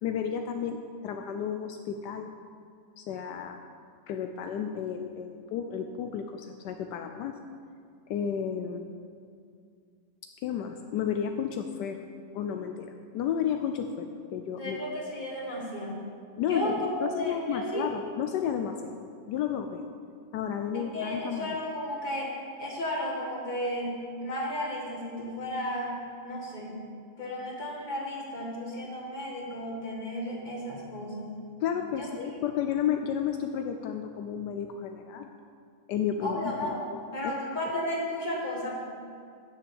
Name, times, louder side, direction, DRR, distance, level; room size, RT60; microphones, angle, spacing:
voice 1, 0.0-2.3 3.0-3.6 4.1-7.3 8.1-8.9 10.4-12.0 12.3-14.8 16.4-19.9 20.3-21.6 31.6-35.3 35.9-37.3, left 8 dB, 80° left, 5 dB, 1.2 m, -32 dB
voice 2, 14.6-16.1 16.5-17.9 20.7-22.3 22.6-23.9 24.2-26.0 26.2-26.8 27.2-31.3 31.9-32.1 36.2-36.9 37.1-38.8, left 1 dB, 25° left, -2 dB, 1.9 m, -33 dB
9.4 x 7.1 x 7.1 m, 2.2 s
omnidirectional pair, 1.8 m